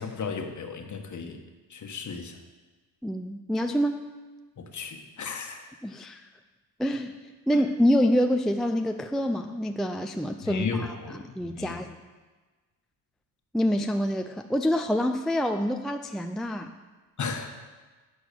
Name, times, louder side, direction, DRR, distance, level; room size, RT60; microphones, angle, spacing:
voice 1, 0.0-1.4 1.7-2.4 4.6-5.7 7.5-7.6 10.4-11.8 17.2-17.7, left 5 dB, 40° left, 5 dB, 1.4 m, -35 dB
voice 2, 3.0-4.1 5.8-6.2 6.8-7.1 7.5-11.9 13.5-16.8, equal, ahead, 6 dB, 0.4 m, -26 dB
11.5 x 4.5 x 6.9 m, 1.3 s
supercardioid pair, 60°, 45 cm